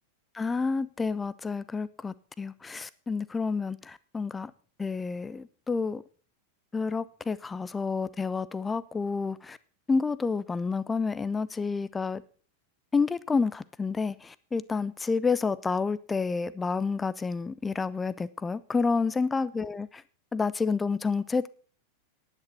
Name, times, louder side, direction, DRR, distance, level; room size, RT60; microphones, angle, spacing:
voice 1, 0.3-4.5 4.8-6.0 6.7-9.6 9.9-12.2 12.9-20.0 20.3-21.5, left 4 dB, 15° left, 0.6 m, -29 dB
10.5 x 9.6 x 5.7 m
figure-of-eight pair, 90°, 0 cm